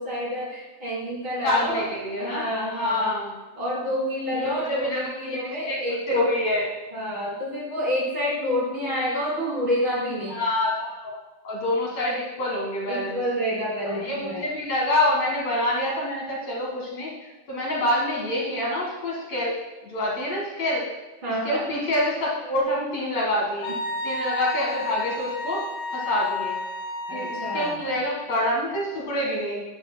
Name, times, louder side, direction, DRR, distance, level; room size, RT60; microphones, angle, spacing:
voice 1, 0.0-1.9 2.2-3.1 3.6-6.2 6.9-10.4 12.9-14.4 21.2-21.6 27.1-27.7, equal, 50° right, -4 dB, 1.5 m, -28 dB
voice 2, 1.4-2.4 2.7-3.4 4.4-5.8 6.1-6.7 10.3-11.2 11.4-13.2 13.9-19.6 19.8-20.9 21.4-23.8 24.0-25.7 25.9-26.6 27.1-29.6, left 1 dB, 55° left, -3 dB, 2.0 m, -26 dB
Wind instrument woodwind instrument, 23.6-27.9, left 2 dB, 90° left, 3.4 m, -31 dB
11.5 x 10.5 x 2.2 m, 1.2 s
omnidirectional pair, 5.2 m